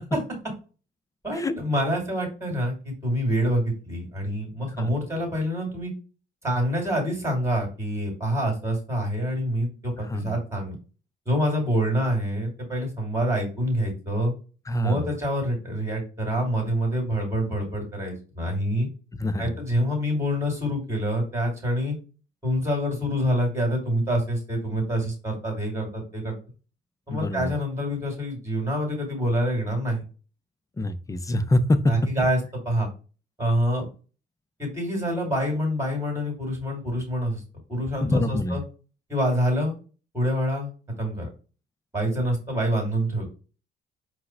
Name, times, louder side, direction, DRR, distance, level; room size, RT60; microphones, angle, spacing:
voice 1, 1.2-5.9 6.4-10.7 11.3-14.3 14.8-18.9 19.4-22.0 22.4-26.3 27.1-30.0 31.9-32.9 33.4-33.9 34.6-37.4 37.7-38.6 39.1-39.7 40.1-40.7 41.0-41.3 41.9-43.3, equal, 15° right, 0 dB, 2.3 m, -26 dB
voice 2, 14.7-15.1 19.2-19.5 27.1-27.5 30.8-31.8 32.2-32.3 38.0-38.6, left 1 dB, 15° left, 11 dB, 0.4 m, -25 dB
4.5 x 2.1 x 4.3 m, 0.35 s
cardioid pair, 90°, 20 cm